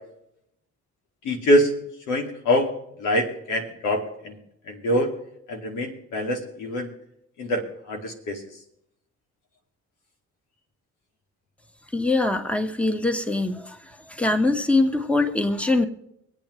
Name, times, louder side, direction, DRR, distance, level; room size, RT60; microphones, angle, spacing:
voice 1, 1.2-1.7 2.1-2.7 3.0-4.4 4.7-5.1 5.5-6.9 7.4-8.4, equal, 85° left, 3 dB, 2.3 m, -24 dB
voice 2, 11.9-13.8 14.1-15.8, left 2 dB, 5° left, 6 dB, 1.4 m, -23 dB
25.0 x 8.8 x 3.2 m, 0.80 s
cardioid pair, 90°, 30 cm